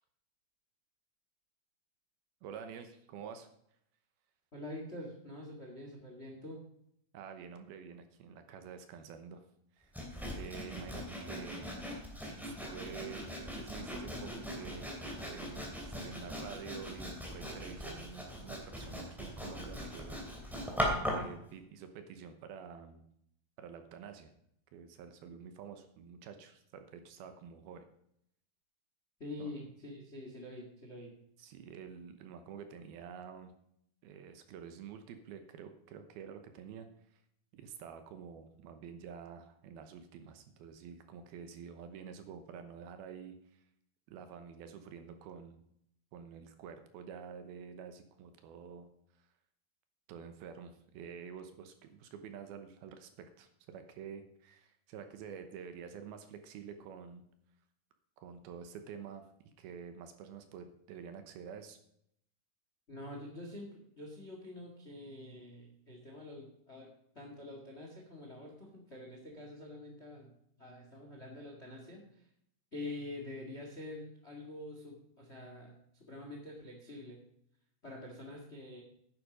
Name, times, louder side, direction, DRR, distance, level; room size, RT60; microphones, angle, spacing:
voice 1, 2.4-3.5 7.1-9.4 9.8-9.9 10.3-11.7 12.6-14.9 15.2-20.6 21.0-23.1 23.6-24.3 24.7-27.9 29.4-29.5 31.4-33.5 34.0-36.9 37.1-37.2 37.5-43.6 44.1-45.6 46.1-48.9 49.2-49.3 50.1-57.3 58.2-59.3 59.6-61.8, right 7 dB, 75° right, 8 dB, 2.6 m, -48 dB
voice 2, 4.5-6.6 29.2-31.1 62.9-70.3 70.6-72.0 72.7-77.2 77.8-78.8, left 1 dB, 45° left, 1 dB, 0.8 m, -46 dB
Sawing, 9.9-21.3, equal, ahead, 1.6 m, -40 dB
9.9 x 9.3 x 5.1 m, 0.72 s
omnidirectional pair, 4.8 m